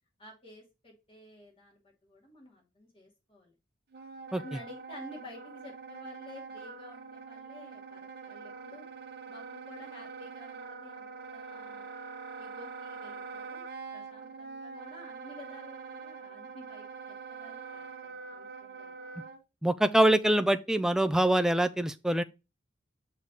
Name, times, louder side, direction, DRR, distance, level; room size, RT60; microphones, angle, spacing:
voice 1, 0.2-3.5 4.3-8.9 9.3-11.9 12.4-13.6 13.9-18.9, left 1 dB, 30° left, 2.4 m, -52 dB
Wind instrument woodwind instrument, 3.9-19.4, right 5 dB, 55° right, 0.7 m, -44 dB
voice 2, 19.6-22.2, right 1 dB, 5° right, 0.3 m, -24 dB
6.4 x 3.4 x 5.4 m
head